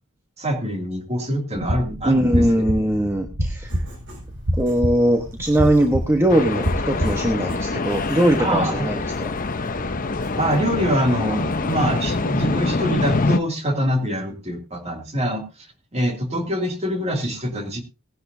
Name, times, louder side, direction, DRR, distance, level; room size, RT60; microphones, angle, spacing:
voice 1, 0.4-2.4 8.4-9.0 10.4-15.7 15.9-17.8, equal, 30° right, 4 dB, 2.6 m, -24 dB
sound 1, 1.5-7.7, equal, 85° right, 2.1 m, -27 dB
voice 2, 2.0-3.7 4.6-9.3, right 1 dB, 10° right, 4 dB, 1.2 m, -20 dB
Writing, 3.6-13.2, left 1 dB, 55° right, 7.3 m, -44 dB
sound 2, 6.3-13.4, left 3 dB, 40° left, 0.8 m, -25 dB
18.5 x 11.0 x 2.7 m, 0.29 s
head